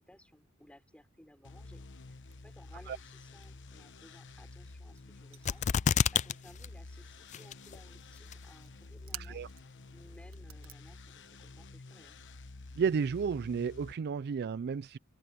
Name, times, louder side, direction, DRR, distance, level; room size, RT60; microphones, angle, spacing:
voice 1, 0.0-12.2, left 1 dB, 5° left, 6.1 m, -59 dB
sound 1, 1.4-13.9, left 2 dB, 60° left, 1.1 m, -50 dB
sound 2, 2.0-3.1 3.4-6.9 7.1-7.6 8.5-9.8 10.1-13.4, right 12 dB, 70° right, 1.6 m, -53 dB
sound 3, 5.5-6.3 6.6-6.7 7.3-7.8 8.3-8.4, left 7 dB, 35° left, 0.3 m, -27 dB
voice 2, 9.2-9.5 12.8-15.0, right 6 dB, 50° right, 0.3 m, -32 dB
head